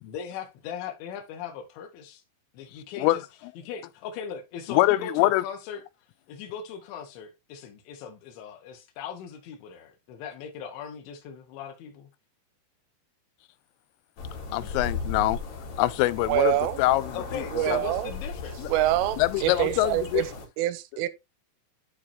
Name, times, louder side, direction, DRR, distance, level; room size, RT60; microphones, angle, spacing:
voice 1, 0.0-2.2 2.5-3.2 3.6-5.8 6.3-12.1 17.1-18.7, left 7 dB, 75° left, 3.6 m, -39 dB
voice 2, 4.7-5.4 14.5-15.4 15.8-17.4 17.7-17.8 18.6-18.7 19.2-20.2, left 17 dB, 90° left, 3.2 m, -24 dB
sound 1, 14.2-20.5, left 4 dB, 55° left, 3.6 m, -37 dB
voice 3, 16.3-16.8 17.5-18.1 18.7-20.2 20.6-21.1, right 14 dB, 90° right, 3.2 m, -25 dB
12.0 x 4.8 x 2.8 m
omnidirectional pair, 5.7 m